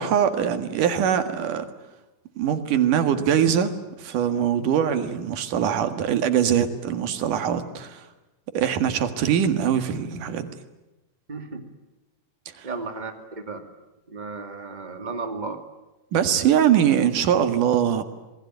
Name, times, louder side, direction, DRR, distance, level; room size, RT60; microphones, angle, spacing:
voice 1, 0.0-1.7 2.4-8.1 8.5-10.6 12.6-12.7 16.1-18.0, right 9 dB, 90° right, 9 dB, 3.4 m, -22 dB
voice 2, 11.3-11.7 12.6-13.1 13.5-13.6 14.1-15.6, right 4 dB, 15° right, 6 dB, 2.3 m, -33 dB
27.0 x 20.5 x 9.3 m, 1.0 s
omnidirectional pair, 3.6 m